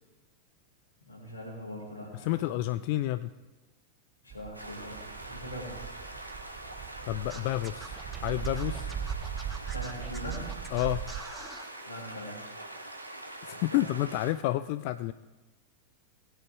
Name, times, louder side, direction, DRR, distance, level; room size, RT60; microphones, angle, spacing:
voice 1, 1.0-2.4 4.2-5.9 9.7-10.5 11.8-12.4 13.5-13.8, equal, 85° left, -4 dB, 5.1 m, -42 dB
voice 2, 2.1-3.3 7.0-8.9 10.7-11.0 13.4-15.1, left 15 dB, 45° left, 13 dB, 0.3 m, -30 dB
sound 1, 4.3-11.2, right 9 dB, 30° right, 0.6 m, -39 dB
sound 2, 4.5-14.3, right 1 dB, 85° right, 1.3 m, -44 dB
Scratching (performance technique), 7.3-11.7, right 2 dB, 5° right, 1.6 m, -45 dB
19.5 x 9.5 x 3.5 m, 1.1 s
figure-of-eight pair, 90°, 0 cm